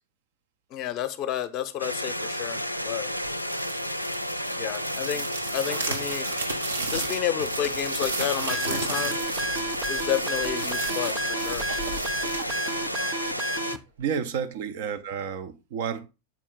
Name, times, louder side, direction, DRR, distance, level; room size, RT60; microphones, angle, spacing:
voice 1, 0.7-3.1 4.6-6.3 6.9-9.2 9.9-11.7, left 11 dB, 35° left, 0.7 m, -31 dB
sound 1, 1.8-13.8, equal, 90° left, 0.4 m, -31 dB
sound 2, 3.2-13.6, right 3 dB, 70° right, 1.2 m, -35 dB
sound 3, 8.5-13.8, right 1 dB, 15° right, 0.4 m, -32 dB
voice 2, 14.0-16.1, right 7 dB, 50° right, 0.7 m, -31 dB
7.2 x 4.5 x 3.7 m
figure-of-eight pair, 90°, 0 cm